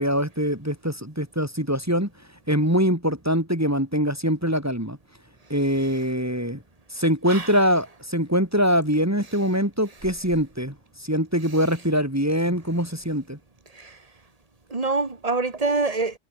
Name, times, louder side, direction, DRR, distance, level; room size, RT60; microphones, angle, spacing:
voice 1, 0.0-2.1 2.5-5.0 5.5-6.6 6.9-13.4, equal, 15° right, 3.0 m, -23 dB
voice 2, 14.7-16.2, right 3 dB, 30° right, 2.0 m, -25 dB
omnidirectional pair, 1.2 m